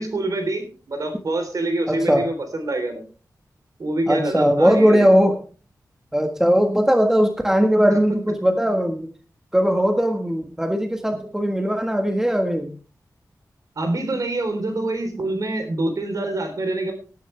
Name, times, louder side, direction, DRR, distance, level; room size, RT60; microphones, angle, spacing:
voice 1, 0.0-3.0 3.8-5.2 13.8-16.9, right 2 dB, 60° right, 6 dB, 3.7 m, -26 dB
voice 2, 1.9-2.3 4.1-5.4 6.1-9.1 9.5-12.7, equal, 5° right, 5 dB, 1.5 m, -19 dB
19.0 x 11.0 x 3.4 m, 0.36 s
wide cardioid pair, 135°, 7 cm